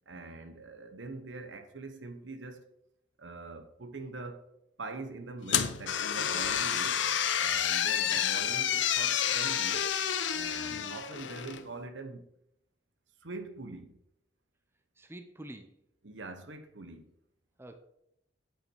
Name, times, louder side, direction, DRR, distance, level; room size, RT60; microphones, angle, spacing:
voice 1, 0.1-2.6 3.2-4.5 4.8-7.0 7.4-9.9 10.3-12.3 13.2-14.0 16.0-17.0, right 3 dB, 75° right, 1.2 m, -43 dB
sound 1, 5.5-11.6, left 9 dB, 75° left, 0.8 m, -29 dB
voice 2, 15.0-15.8 17.6-17.8, right 1 dB, 15° right, 0.8 m, -47 dB
9.0 x 8.6 x 4.7 m
head